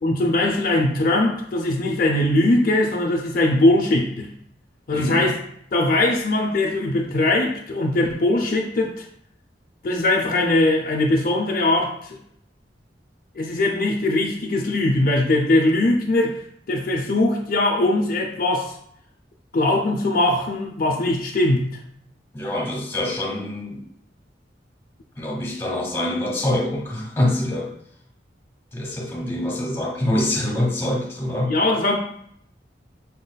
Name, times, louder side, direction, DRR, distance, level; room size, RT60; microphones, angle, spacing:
voice 1, 0.0-4.3 4.9-5.4 5.7-9.1 9.8-12.2 13.4-18.8 19.5-21.7 31.5-32.0, left 2 dB, 50° left, 0 dB, 0.6 m, -21 dB
voice 2, 4.9-5.3 22.3-23.8 25.2-27.7 28.7-31.5, left 1 dB, 15° left, -2 dB, 1.1 m, -25 dB
5.8 x 4.0 x 2.3 m, 0.69 s
head